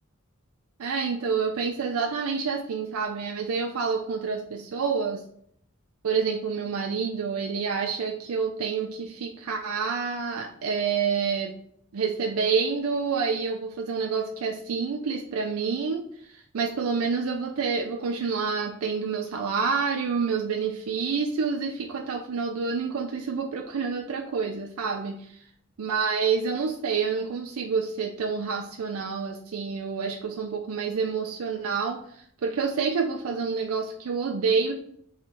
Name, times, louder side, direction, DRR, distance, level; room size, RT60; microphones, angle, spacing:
voice 1, 0.8-5.2 6.0-11.5 11.9-25.4 25.8-34.7, right 5 dB, 90° right, 2 dB, 0.4 m, -28 dB
3.2 x 2.9 x 3.7 m, 0.66 s
head